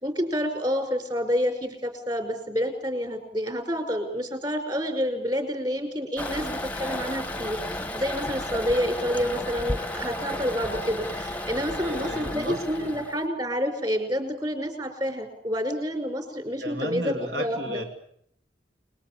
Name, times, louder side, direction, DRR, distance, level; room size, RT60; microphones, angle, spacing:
voice 1, 0.0-17.8, equal, 25° right, 7 dB, 5.0 m, -29 dB
Toilet flush, 6.2-13.3, left 1 dB, 10° left, 1.2 m, -33 dB
voice 2, 11.8-13.0 16.6-17.8, equal, 65° right, 4 dB, 2.8 m, -34 dB
29.5 x 21.0 x 8.6 m, 0.69 s
head